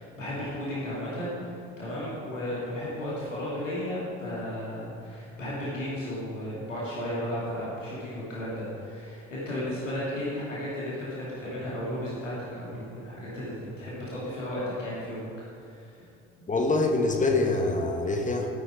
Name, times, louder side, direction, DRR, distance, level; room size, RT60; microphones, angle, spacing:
voice 1, 0.0-15.3 15.6-16.0 16.4-16.5, left 1 dB, 80° left, -7 dB, 2.7 m, -34 dB
voice 2, 16.5-18.5, left 2 dB, 20° left, 3 dB, 1.6 m, -25 dB
13.5 x 9.7 x 4.7 m, 2.5 s
figure-of-eight pair, 55°, 37 cm